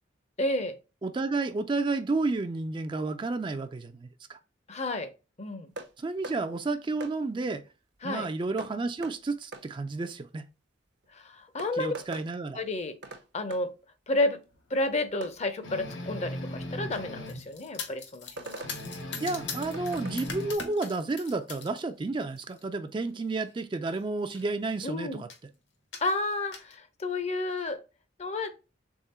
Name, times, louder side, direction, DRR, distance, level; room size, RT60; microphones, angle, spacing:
voice 1, 0.4-0.8 4.7-5.1 5.4-5.7 8.0-8.3 11.1-11.9 12.6-13.0 13.3-13.7 14.1-14.4 14.7-18.7 24.8-25.2 26.0-27.8 28.2-28.5, left 2 dB, 35° left, 0.6 m, -31 dB
voice 2, 1.0-4.4 6.0-7.6 8.0-10.4 11.7-12.6 19.2-25.3, right 3 dB, 25° right, 0.3 m, -31 dB
sound 1, 5.8-5.9 6.2-6.4 7.0-7.2 8.6-8.7 9.0-9.2 9.5-9.7 11.0-11.1 11.6-12.3 13.0-13.2 13.5-13.6 15.2-15.4 17.0-17.1 18.4-18.8 19.7-20.2, right 2 dB, 60° right, 0.6 m, -41 dB
sound 2, 15.6-17.5 18.6-20.5, equal, 90° left, 0.9 m, -38 dB
sound 3, 17.3-21.8 22.2-22.6 23.5-23.6 23.9-24.0 24.2-24.8 25.3-25.5 25.9-26.8, left 5 dB, 65° left, 1.1 m, -41 dB
3.6 x 3.5 x 4.2 m
head